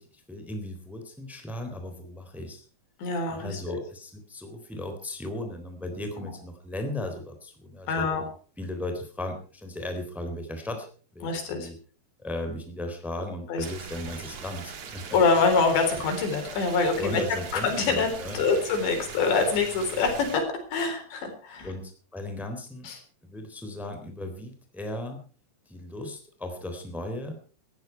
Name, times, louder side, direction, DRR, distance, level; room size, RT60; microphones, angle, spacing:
voice 1, 0.0-2.6 3.3-8.1 8.6-11.7 12.2-15.2 16.9-18.4 21.6-22.9 23.2-25.2 25.7-27.3, left 1 dB, ahead, 5 dB, 2.9 m, -36 dB
voice 2, 3.0-3.8 6.2-6.3 7.9-8.2 11.2-11.7 13.5-13.7 15.1-21.7 22.8-23.0, left 4 dB, 85° left, 5 dB, 6.1 m, -25 dB
sound 1, 13.6-20.4, right 6 dB, 45° right, 2.5 m, -41 dB
18.0 x 14.0 x 4.6 m, 0.41 s
omnidirectional pair, 5.0 m